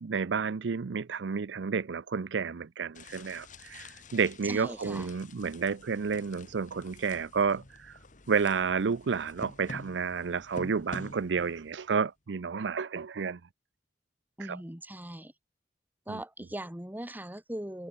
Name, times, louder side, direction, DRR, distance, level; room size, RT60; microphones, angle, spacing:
voice 1, 0.0-8.0 8.3-13.4 14.4-14.6 16.1-16.2, right 5 dB, 90° right, 0.5 m, -31 dB
sound 1, 2.9-11.8, left 2 dB, 45° left, 2.7 m, -48 dB
voice 2, 4.4-5.1 14.4-15.3 16.1-17.9, right 1 dB, 10° right, 1.6 m, -39 dB
head